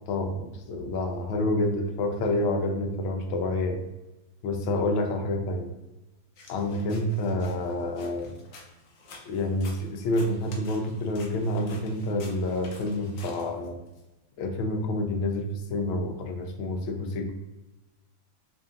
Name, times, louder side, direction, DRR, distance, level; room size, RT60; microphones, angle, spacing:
voice 1, 0.1-3.8 4.4-5.7 6.5-8.3 9.3-13.8 14.4-17.3, left 1 dB, 90° left, 4 dB, 1.5 m, -28 dB
sound 1, 6.4-14.0, left 3 dB, 65° left, 0.8 m, -50 dB
3.6 x 2.6 x 3.6 m, 1.0 s
omnidirectional pair, 2.2 m